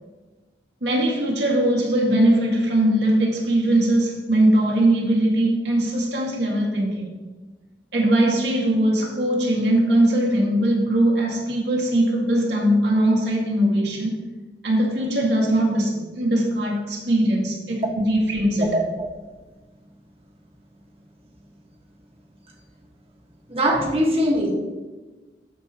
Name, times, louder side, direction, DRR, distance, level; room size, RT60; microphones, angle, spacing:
voice 1, 0.8-7.1 7.9-14.2 14.6-18.8, right 1 dB, 65° right, -3 dB, 1.9 m, -20 dB
voice 2, 18.7-19.1 23.5-24.5, equal, 35° right, 0 dB, 1.5 m, -21 dB
13.0 x 4.8 x 2.9 m, 1.2 s
head